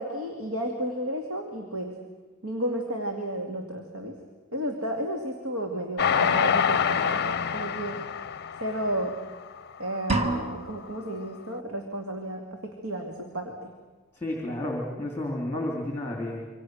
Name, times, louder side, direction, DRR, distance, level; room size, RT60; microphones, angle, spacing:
voice 1, 0.0-2.0 2.4-4.1 4.5-8.0 8.6-9.1 9.8-13.7, right 1 dB, 70° right, 2 dB, 2.5 m, -32 dB
Train, 6.0-9.4 9.9-10.0 10.3-10.4, left 7 dB, 50° left, 0.7 m, -26 dB
sound 1, 10.1-11.1, right 2 dB, 30° right, 1.8 m, -28 dB
voice 2, 14.1-16.5, left 1 dB, 10° left, 0 dB, 3.1 m, -31 dB
27.0 x 25.0 x 6.4 m, 1.3 s
head